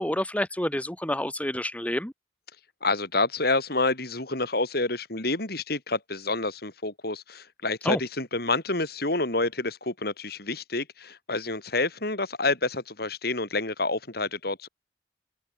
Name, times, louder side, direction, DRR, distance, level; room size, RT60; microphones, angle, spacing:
voice 1, 0.0-2.1 7.9-8.0, left 1 dB, 10° left, 3.7 m, -28 dB
voice 2, 2.8-14.7, left 2 dB, 60° left, 7.1 m, -28 dB
open air
head